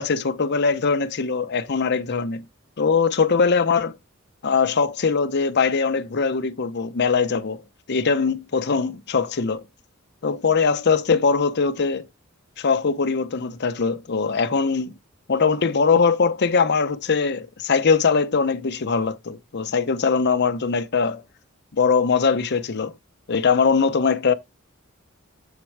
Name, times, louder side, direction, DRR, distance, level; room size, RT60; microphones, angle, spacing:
voice 1, 0.0-2.4 2.8-3.9 4.4-9.6 10.2-12.0 12.6-14.9 15.3-21.2 21.7-22.9 23.3-24.3, left 5 dB, 55° left, 0.7 m, -21 dB
8.3 x 4.3 x 4.7 m
head